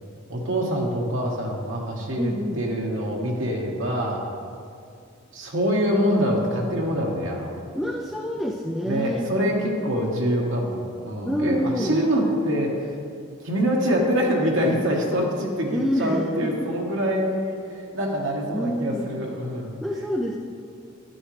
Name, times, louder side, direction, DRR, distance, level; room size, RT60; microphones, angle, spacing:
voice 1, 0.3-4.2 5.3-7.5 8.8-12.9 13.4-19.7, equal, 70° right, -2 dB, 1.3 m, -25 dB
voice 2, 2.2-2.6 7.7-9.3 11.3-12.0 15.7-16.7 18.5-19.1 19.8-20.4, equal, ahead, -2 dB, 0.4 m, -27 dB
10.5 x 10.0 x 3.2 m, 2.3 s
head